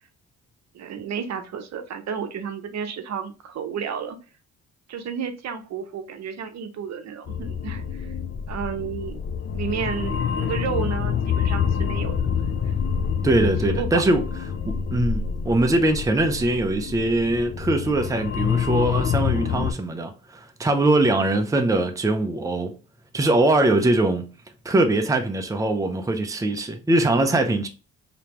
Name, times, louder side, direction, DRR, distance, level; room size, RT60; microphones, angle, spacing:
voice 1, 0.7-4.2 4.9-8.1 8.5-9.1 9.5-12.1 12.7-12.8 13.7-14.0, right 7 dB, 60° right, 0.7 m, -32 dB
sound 1, 7.3-19.7, left 7 dB, 40° left, 0.5 m, -27 dB
voice 2, 13.2-14.2 14.7-22.7 23.1-24.2 24.6-27.7, right 2 dB, 10° right, 0.6 m, -22 dB
3.4 x 2.9 x 3.0 m
cardioid pair, 90°, 30 cm